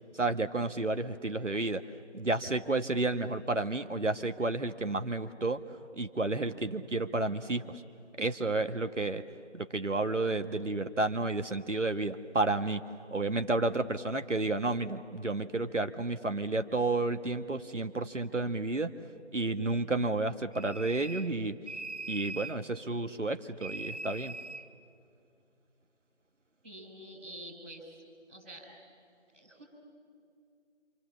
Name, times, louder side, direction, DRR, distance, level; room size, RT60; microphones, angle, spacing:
voice 1, 0.1-1.8 2.1-5.6 5.9-7.8 8.2-9.2 9.5-12.8 13.1-18.9 19.3-21.6 22.1-24.3, right 2 dB, 85° right, 8 dB, 1.5 m, -31 dB
sound 1, 20.5-21.4 21.7-22.6 23.6-24.7, right 2 dB, 65° right, 1.6 m, -41 dB
voice 2, 26.6-27.9 28.3-28.7 29.3-29.6, right 1 dB, ahead, -14 dB, 2.7 m, -47 dB
28.0 x 28.0 x 7.4 m, 2.5 s
figure-of-eight pair, 175°, 36 cm